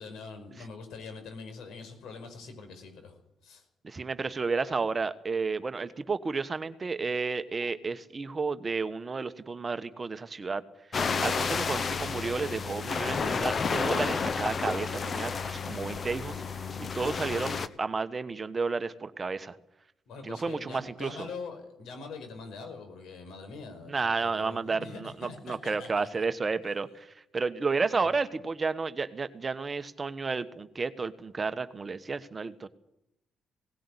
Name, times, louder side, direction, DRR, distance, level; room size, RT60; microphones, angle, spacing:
voice 1, 0.0-3.7 20.1-26.2 28.0-28.2, left 4 dB, 80° left, 6 dB, 5.2 m, -44 dB
voice 2, 3.8-10.6 11.2-19.5 20.3-21.3 23.9-25.1 25.5-27.1 27.3-32.7, right 4 dB, 30° right, 11 dB, 1.2 m, -32 dB
sound 1, 10.9-17.7, left 5 dB, 45° left, 1.1 m, -31 dB
18.0 x 16.5 x 9.9 m, 0.83 s
cardioid pair, 90°, 0 cm